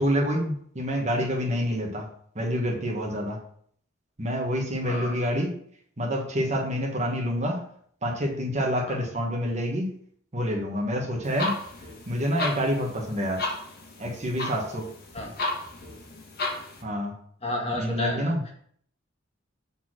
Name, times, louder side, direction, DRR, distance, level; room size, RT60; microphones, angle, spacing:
voice 1, 0.0-2.1 2.3-3.4 4.2-5.5 6.0-7.6 8.0-9.9 10.3-11.6 12.1-13.4 14.0-14.9 16.8-17.1 17.8-18.4, equal, 35° right, 1 dB, 1.4 m, -27 dB
voice 2, 4.8-5.2 8.9-9.0 15.1-15.3 17.4-18.3, left 1 dB, 30° left, 0 dB, 1.8 m, -31 dB
sound 1, 11.2-16.8, left 2 dB, 50° left, 1.5 m, -34 dB
7.0 x 4.3 x 6.2 m, 0.62 s
head